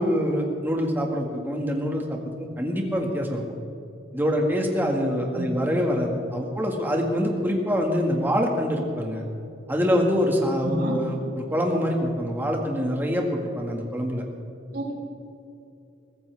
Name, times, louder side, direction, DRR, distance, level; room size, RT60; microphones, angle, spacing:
voice 1, 0.0-3.4 4.1-9.2 9.7-14.2, equal, 10° right, 0 dB, 1.9 m, -25 dB
voice 2, 10.6-11.0 14.7-15.0, equal, 55° right, -2 dB, 3.8 m, -29 dB
22.5 x 14.5 x 3.5 m, 2.6 s
head